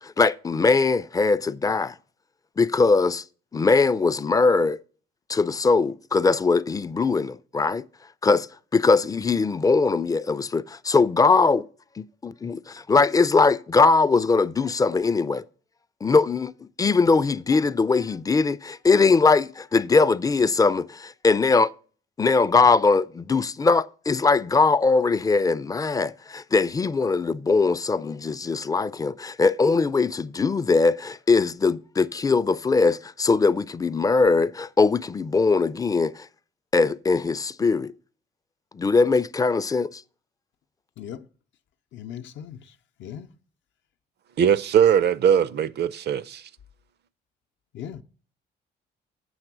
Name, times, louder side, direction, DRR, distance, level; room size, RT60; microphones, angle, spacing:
voice 1, 0.0-1.9 2.6-3.2 3.5-4.8 5.3-7.8 8.2-8.5 8.7-11.7 12.0-15.4 16.0-16.5 16.8-21.7 22.2-36.3 36.7-37.9 38.7-40.0, left 4 dB, 20° left, 0.4 m, -21 dB
voice 2, 41.9-42.6 43.0-43.3 47.7-48.0, left 9 dB, 70° left, 0.6 m, -37 dB
voice 3, 44.4-46.5, right 9 dB, 55° right, 0.5 m, -20 dB
7.9 x 5.9 x 5.9 m
cardioid pair, 90°, 20 cm